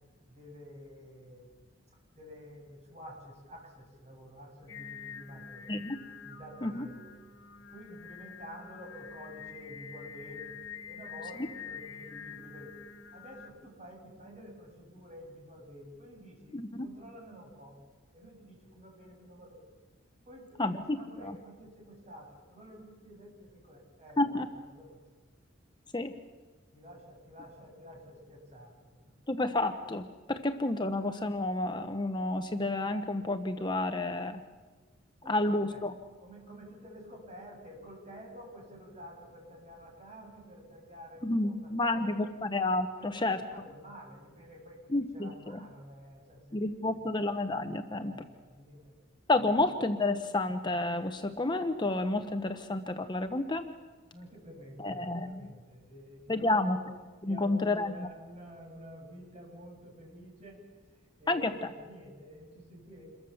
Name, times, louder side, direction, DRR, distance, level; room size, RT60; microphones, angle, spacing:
voice 1, 0.3-1.7 2.2-5.8 6.2-7.1 7.6-10.6 10.9-12.8 13.1-17.8 18.1-19.6 20.3-25.0 26.0-26.1 26.7-28.8 29.1-29.2 35.2-35.8 36.2-42.5 43.0-47.2 48.0-48.9 49.4-49.6 54.1-56.8 57.2-63.0, equal, 35° right, 0 dB, 7.6 m, -50 dB
Singing, 4.7-13.5, left 6 dB, 70° left, 1.7 m, -46 dB
voice 2, 16.5-16.9 20.6-21.0 21.2-21.3 24.2-24.5 25.9-26.2 29.3-34.4 35.3-35.9 41.2-43.4 44.9-45.3 46.5-48.1 49.3-53.7 54.8-55.4 56.3-56.8 57.2-58.1 61.3-61.5, left 2 dB, 25° left, 7 dB, 0.9 m, -30 dB
28.0 x 22.0 x 7.1 m, 1.4 s
head